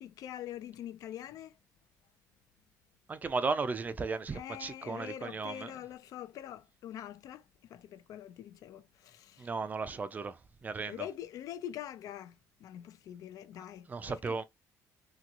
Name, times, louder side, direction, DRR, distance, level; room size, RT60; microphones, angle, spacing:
voice 1, 0.0-1.5 4.3-7.4 7.7-9.5 10.9-14.4, left 11 dB, 65° left, 0.4 m, -44 dB
voice 2, 3.1-5.7 9.4-11.1 13.9-14.4, right 4 dB, 25° right, 0.4 m, -35 dB
2.9 x 2.9 x 2.4 m
cardioid pair, 120°, 6 cm